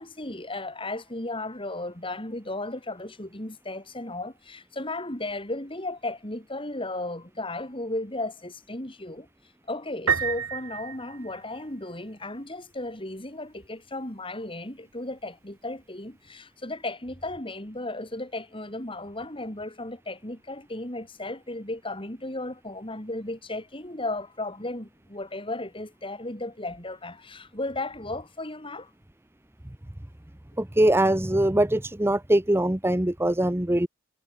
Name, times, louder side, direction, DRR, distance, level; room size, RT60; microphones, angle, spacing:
voice 1, 0.0-9.3 9.7-28.9, left 2 dB, 25° left, 4.1 m, -35 dB
Piano, 10.1-11.9, right 7 dB, 90° right, 2.1 m, -29 dB
voice 2, 30.6-33.9, right 1 dB, 10° right, 0.8 m, -22 dB
head